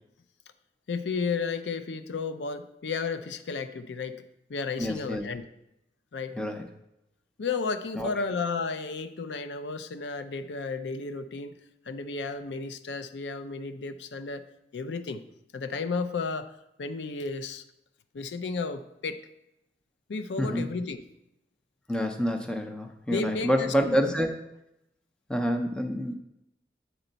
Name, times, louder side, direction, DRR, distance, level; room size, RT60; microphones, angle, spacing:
voice 1, 0.9-4.2 4.5-5.4 6.1-6.3 7.4-11.6 11.9-14.4 14.7-15.2 15.5-16.5 16.8-17.6 18.1-19.2 20.1-21.0 23.1-24.0, left 4 dB, 90° left, 10 dB, 0.5 m, -33 dB
voice 2, 4.8-5.2 6.3-6.6 8.0-8.1 20.4-20.7 21.9-24.4 25.3-26.2, equal, 5° left, 5 dB, 0.4 m, -27 dB
8.0 x 4.4 x 4.0 m, 0.86 s
head